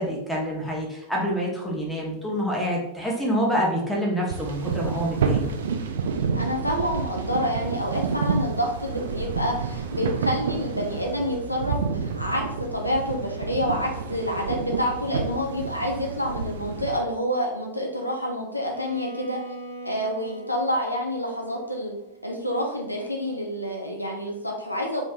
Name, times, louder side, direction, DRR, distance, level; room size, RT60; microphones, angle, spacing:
voice 1, 0.0-5.4, equal, 5° left, -3 dB, 0.9 m, -27 dB
sound 1, 4.3-17.0, right 5 dB, 60° right, 0.3 m, -29 dB
voice 2, 6.3-12.4 12.7-19.4 19.8-21.9 22.2-25.0, equal, 85° left, 0 dB, 0.5 m, -28 dB
Bowed string instrument, 18.6-22.6, right 1 dB, 90° right, 0.7 m, -41 dB
3.1 x 3.1 x 2.4 m, 0.86 s
figure-of-eight pair, 90°, 0 cm